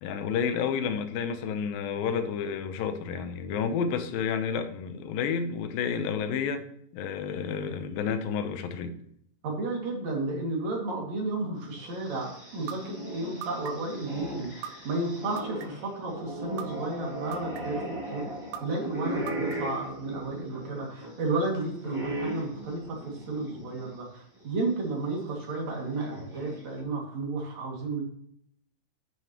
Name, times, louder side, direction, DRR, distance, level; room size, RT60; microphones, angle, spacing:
voice 1, 0.0-8.9 14.6-14.7, left 6 dB, 80° left, 8 dB, 2.6 m, -30 dB
voice 2, 9.4-14.5 14.8-28.0, right 2 dB, 55° right, -1 dB, 3.3 m, -32 dB
sound 1, 11.7-24.0 24.4-24.5 25.5-26.8, right 1 dB, 10° right, 2.7 m, -38 dB
sound 2, 12.7-12.8 13.4-13.9 14.6-14.7 15.4-15.9 16.6-16.7 17.3-17.8 18.5-18.6 19.3-19.8, right 10 dB, 90° right, 2.4 m, -38 dB
9.3 x 9.3 x 3.0 m, 0.67 s
omnidirectional pair, 4.1 m